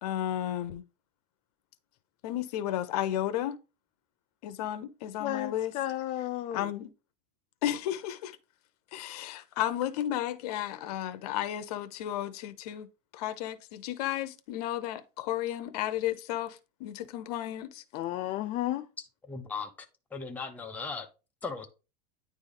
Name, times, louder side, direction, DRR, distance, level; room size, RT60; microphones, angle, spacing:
voice 1, 0.0-0.8 2.2-3.6 4.4-5.7 6.5-6.9 7.6-8.4 8.9-12.9 13.1-17.8, left 12 dB, 70° left, 0.9 m, -33 dB
voice 2, 5.2-6.7 17.9-18.9, left 14 dB, 35° left, 0.5 m, -33 dB
voice 3, 19.0-19.7 20.1-21.1 21.4-21.7, left 4 dB, 10° left, 0.8 m, -37 dB
9.8 x 3.5 x 3.9 m
supercardioid pair, 150°, 21 cm